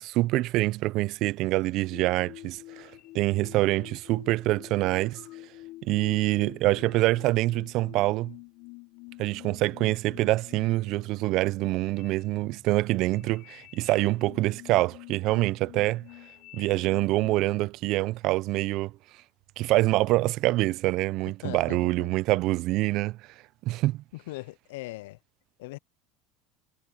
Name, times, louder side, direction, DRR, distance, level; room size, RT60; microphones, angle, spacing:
voice 1, 0.0-5.2 5.8-8.3 9.2-16.0 16.5-18.9 19.6-23.2 23.6-24.0, right 18 dB, 60° right, 0.7 m, -25 dB
sound 1, 1.9-17.6, left 19 dB, 60° left, 1.1 m, -48 dB
voice 2, 21.4-22.2 24.1-25.2 25.6-25.8, left 20 dB, 80° left, 0.8 m, -40 dB
hypercardioid pair, 85°, 0 cm